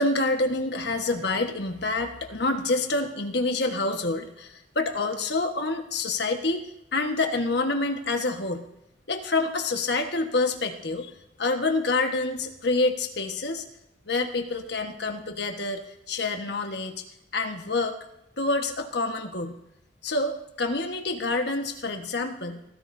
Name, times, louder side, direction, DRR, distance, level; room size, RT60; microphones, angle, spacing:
voice 1, 0.0-6.6 6.9-8.7 9.1-11.1 11.4-13.6 14.1-17.0 17.3-18.0 18.4-19.6 20.0-22.6, left 2 dB, 60° left, 5 dB, 1.4 m, -27 dB
22.0 x 14.5 x 2.7 m, 0.81 s
head